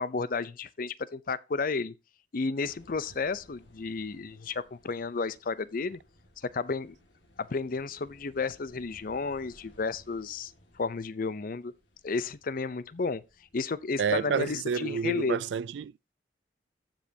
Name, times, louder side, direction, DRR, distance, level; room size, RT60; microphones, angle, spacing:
voice 1, 0.0-1.9 2.3-6.0 6.4-7.0 7.4-11.7 12.0-13.2 13.5-15.4, left 4 dB, 50° left, 0.5 m, -32 dB
sound 1, 2.6-14.5, left 1 dB, 85° left, 2.0 m, -60 dB
voice 2, 14.0-16.1, right 6 dB, 75° right, 0.3 m, -30 dB
15.0 x 5.2 x 2.8 m
head